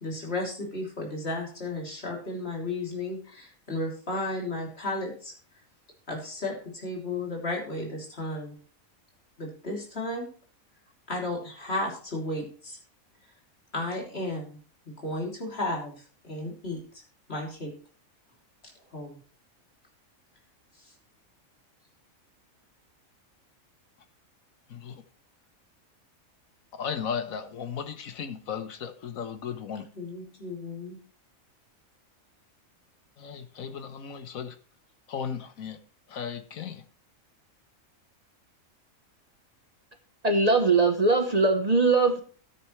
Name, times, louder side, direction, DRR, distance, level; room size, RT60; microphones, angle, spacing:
voice 1, 0.0-5.3 6.1-8.5 9.4-10.3 11.1-12.8 13.7-14.6 14.8-15.9 16.2-16.8 17.3-17.7 18.9-19.2 29.9-31.0, left 2 dB, 45° left, -1 dB, 3.4 m, -33 dB
voice 2, 26.8-29.9 33.2-34.5 35.1-35.8 36.1-36.8, left 7 dB, 75° left, 9 dB, 1.5 m, -35 dB
voice 3, 40.2-42.2, right 3 dB, 30° right, 5 dB, 1.0 m, -21 dB
13.5 x 9.5 x 3.2 m, 0.41 s
omnidirectional pair, 1.5 m